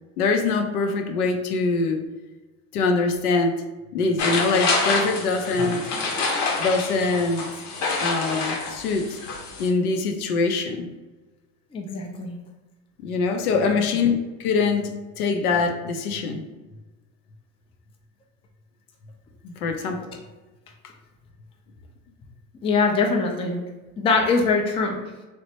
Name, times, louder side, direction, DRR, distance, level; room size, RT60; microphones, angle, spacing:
voice 1, 0.2-2.1 2.7-3.6 3.9-5.9 6.6-7.5 8.0-9.2 9.6-10.9 13.0-16.4 19.4-20.1, left 4 dB, 80° left, 5 dB, 0.6 m, -23 dB
sound 1, 4.2-9.7, left 3 dB, 40° left, 0.8 m, -27 dB
voice 2, 11.7-12.4 22.6-23.6 24.0-25.0, left 4 dB, 15° left, 1 dB, 0.3 m, -22 dB
3.1 x 2.1 x 2.8 m, 1.2 s
hypercardioid pair, 75°, 44 cm